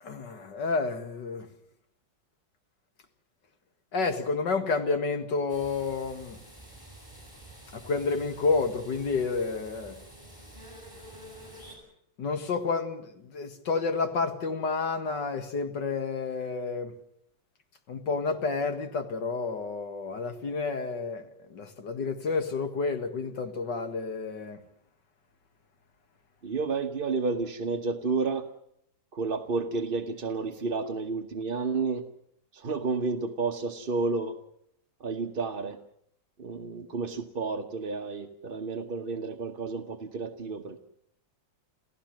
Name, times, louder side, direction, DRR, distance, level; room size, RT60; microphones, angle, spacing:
voice 1, 0.0-1.5 3.9-6.4 7.7-10.0 12.2-17.0 17.9-24.6, left 4 dB, 65° left, 2.5 m, -30 dB
sound 1, 5.5-11.8, right 1 dB, 10° left, 7.1 m, -49 dB
voice 2, 26.4-28.5 29.1-32.0 32.5-34.4 35.0-35.8 36.4-40.8, right 4 dB, 35° right, 1.1 m, -31 dB
28.5 x 15.5 x 7.7 m
omnidirectional pair, 2.0 m